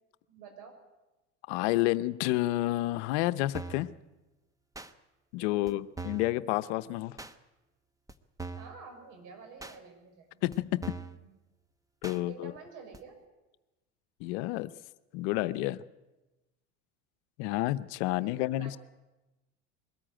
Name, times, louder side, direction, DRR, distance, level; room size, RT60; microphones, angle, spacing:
voice 1, 0.3-0.7 5.4-5.8 8.5-10.5 11.2-11.3 12.0-13.2 18.0-18.8, right 5 dB, 65° right, 5 dB, 6.1 m, -50 dB
voice 2, 1.5-3.9 5.3-7.2 10.4-10.8 12.0-12.5 14.2-14.7 15.1-15.8 17.4-18.8, left 17 dB, 75° left, 14 dB, 0.8 m, -30 dB
sound 1, 3.5-3.9 4.7-4.9 5.7-5.8 6.0-6.3 7.2-7.3 8.1-8.2 8.4-8.7 9.6-9.8 10.5-10.6 10.8-11.2 12.0-12.2 12.9-13.0, right 4 dB, 10° right, 1.1 m, -41 dB
22.0 x 13.5 x 9.0 m, 1.1 s
supercardioid pair, 95°, 34 cm